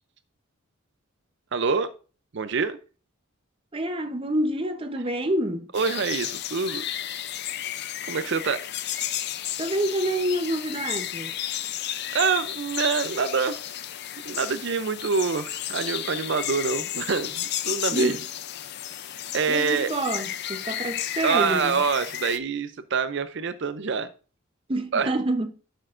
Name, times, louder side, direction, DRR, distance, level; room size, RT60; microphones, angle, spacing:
voice 1, 1.5-1.9 2.3-2.8 5.7-6.8 8.1-8.6 12.1-13.7 14.2-18.2 19.3-19.9 21.2-24.1 24.9-25.1, right 5 dB, 60° right, 0.5 m, -26 dB
voice 2, 3.7-5.7 9.6-11.3 17.9-18.2 19.5-21.8 24.7-25.5, right 1 dB, 25° right, 0.8 m, -27 dB
sound 1, 5.7-22.4, left 11 dB, 55° left, 0.5 m, -33 dB
12.0 x 6.3 x 2.5 m
head